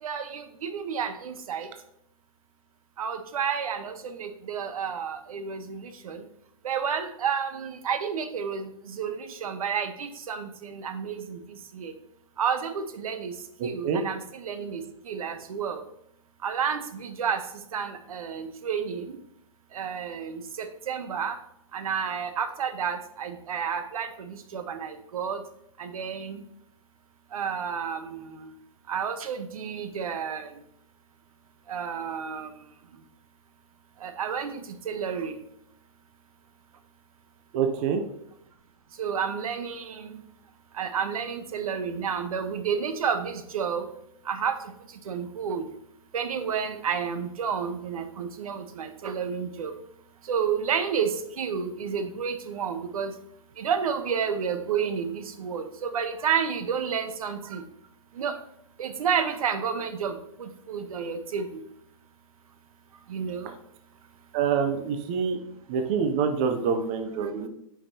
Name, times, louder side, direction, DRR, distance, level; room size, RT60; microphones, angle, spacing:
voice 1, 0.0-1.7 3.0-6.2 6.6-11.9 12.4-13.3 13.6-15.8 16.4-17.4 17.7-19.2 19.7-21.4 21.7-25.4 25.8-26.4 27.3-28.5 28.9-30.5 31.7-32.5 34.0-35.4 39.0-40.2 40.7-43.9 44.2-44.6 45.0-45.7 46.1-49.7 50.2-53.1 53.6-57.6 58.1-58.4 58.8-61.6 63.1-63.5, right 7 dB, 80° right, 9 dB, 0.9 m, -31 dB
voice 2, 13.6-14.0 37.5-38.0 64.3-65.4 65.7-67.5, right 6 dB, 20° right, 6 dB, 0.3 m, -26 dB
8.5 x 5.2 x 2.7 m, 0.77 s
hypercardioid pair, 170°, 18 cm